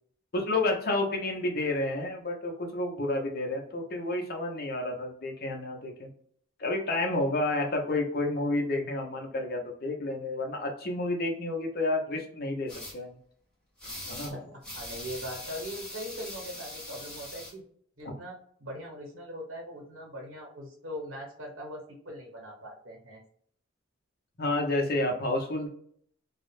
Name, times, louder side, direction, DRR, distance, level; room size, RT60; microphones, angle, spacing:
voice 1, 0.3-6.1 6.6-13.1 14.1-14.4 24.4-25.7, left 2 dB, 50° left, 2 dB, 0.6 m, -30 dB
sound 1, 12.7-12.9 13.8-14.3 14.6-17.5, left 1 dB, 5° left, 0.7 m, -41 dB
voice 2, 14.3-17.6 18.0-23.2, equal, 75° right, -1 dB, 1.0 m, -41 dB
2.3 x 2.0 x 3.0 m, 0.63 s
head